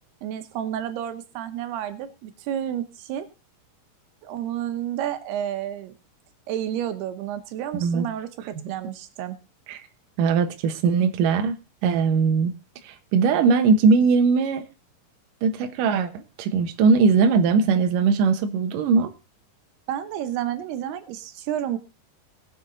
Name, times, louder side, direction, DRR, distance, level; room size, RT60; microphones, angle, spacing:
voice 1, 0.2-3.3 4.2-5.9 6.5-9.4 19.9-21.8, right 10 dB, 90° right, 3.1 m, -30 dB
voice 2, 10.2-11.6 11.8-12.5 12.8-14.6 15.4-19.1, right 5 dB, 65° right, 2.6 m, -20 dB
20.5 x 7.9 x 3.9 m
omnidirectional pair, 4.5 m